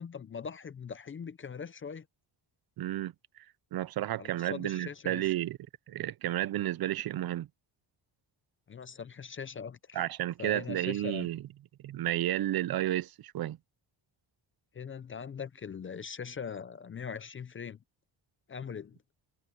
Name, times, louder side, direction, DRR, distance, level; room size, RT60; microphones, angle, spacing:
voice 1, 0.0-2.1 4.2-5.3 8.7-10.1 10.4-11.3 14.7-17.8 18.5-19.0, left 6 dB, 30° left, 0.5 m, -41 dB
voice 2, 2.8-3.1 3.7-5.6 5.9-7.5 9.9-11.4 11.8-13.6, right 13 dB, 55° right, 0.5 m, -32 dB
wide cardioid pair, 175°, 46 cm